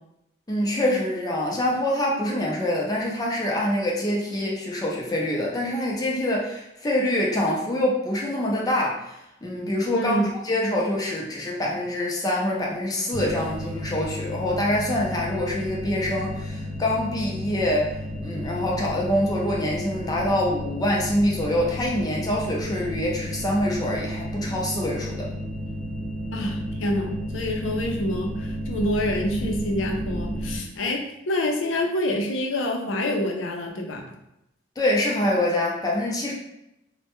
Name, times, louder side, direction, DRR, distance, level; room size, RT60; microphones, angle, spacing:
voice 1, 0.5-9.0 9.4-10.2 10.4-17.9 18.2-25.3 34.8-36.3, left 1 dB, 20° left, -3 dB, 0.4 m, -25 dB
voice 2, 9.9-10.3 26.3-34.0, left 1 dB, 80° left, 2 dB, 0.5 m, -27 dB
sound 1, 13.1-30.6, left 1 dB, 35° right, 1.0 m, -32 dB
2.1 x 2.1 x 2.9 m, 0.85 s
head